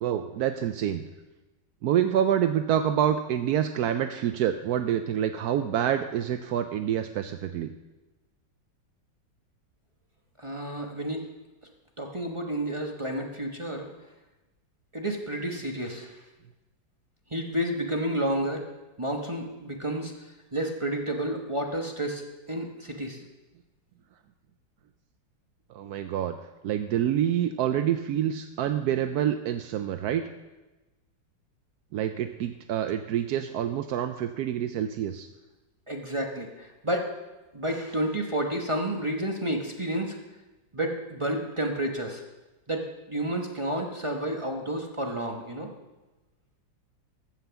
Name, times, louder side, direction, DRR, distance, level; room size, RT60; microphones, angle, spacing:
voice 1, 0.0-1.0 1.8-7.7 25.7-26.4 26.6-30.2 31.9-35.3, right 10 dB, 75° right, 8 dB, 0.9 m, -27 dB
voice 2, 10.4-11.3 12.0-13.9 14.9-16.2 17.3-18.6 19.0-20.1 20.5-23.2 35.9-37.1 37.5-40.2 40.7-42.2 42.7-45.7, right 1 dB, 25° right, 2 dB, 0.7 m, -30 dB
14.5 x 5.8 x 6.9 m, 1.1 s
omnidirectional pair, 2.1 m